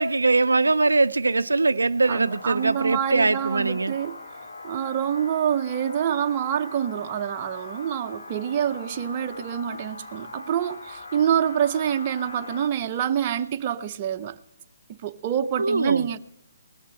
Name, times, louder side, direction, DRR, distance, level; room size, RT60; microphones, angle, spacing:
voice 1, 0.0-3.9 15.6-16.0, right 3 dB, 90° right, 0.4 m, -22 dB
sound 1, 2.0-12.7, left 3 dB, 70° left, 1.7 m, -41 dB
voice 2, 2.1-4.2 4.6-14.4 14.9-16.2, right 9 dB, 35° right, 0.6 m, -26 dB
20.0 x 6.7 x 6.7 m
hypercardioid pair, 145°, 0 cm